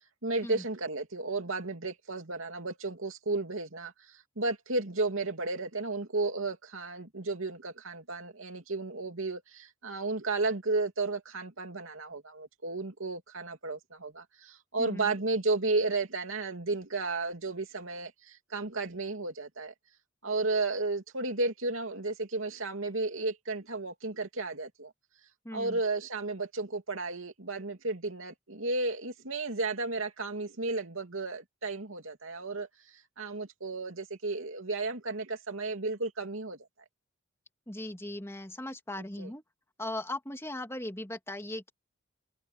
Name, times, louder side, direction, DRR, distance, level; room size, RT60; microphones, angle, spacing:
voice 1, 0.2-19.7 20.2-24.9 25.5-36.6 39.2-39.3, right 3 dB, 75° right, 3.0 m, -33 dB
voice 2, 14.8-15.1 25.4-25.8 37.7-39.4 39.8-41.7, left 1 dB, 15° left, 2.7 m, -38 dB
head